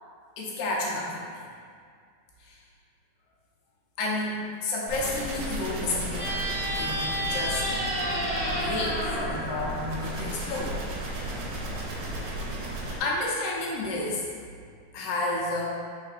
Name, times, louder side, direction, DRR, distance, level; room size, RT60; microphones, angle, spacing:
voice 1, 0.4-1.4 2.4-2.6 4.0-6.3 6.7-7.8 8.5-10.8 12.8-14.2 14.9-15.6, left 2 dB, 85° left, -4 dB, 2.2 m, -31 dB
sound 1, 4.9-13.0, right 1 dB, 75° right, 1.7 m, -34 dB
sound 2, 6.1-10.6, equal, 55° right, 0.5 m, -31 dB
4.3 x 3.9 x 2.4 m, 2.1 s
omnidirectional pair, 3.4 m